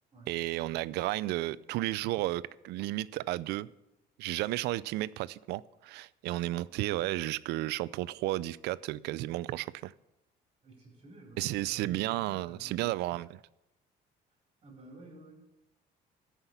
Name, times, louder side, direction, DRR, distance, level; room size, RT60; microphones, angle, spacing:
voice 1, 0.3-3.7 4.2-9.9 11.4-13.4, right 17 dB, 85° right, 19 dB, 0.4 m, -33 dB
voice 2, 10.6-12.9 14.6-15.4, right 2 dB, 30° right, -1 dB, 4.3 m, -52 dB
13.0 x 5.8 x 8.1 m, 0.92 s
cardioid pair, 110°, 17 cm